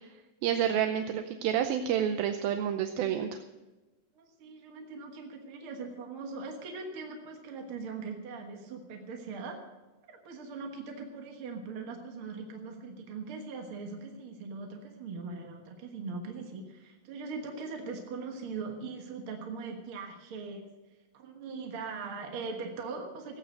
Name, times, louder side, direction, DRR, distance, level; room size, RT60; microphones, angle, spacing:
voice 1, 0.4-3.4, right 9 dB, 80° right, 7 dB, 2.4 m, -29 dB
voice 2, 4.1-9.6 10.1-20.6 21.1-23.4, right 4 dB, 55° right, 3 dB, 1.5 m, -40 dB
16.5 x 9.2 x 6.5 m, 1.2 s
omnidirectional pair, 4.3 m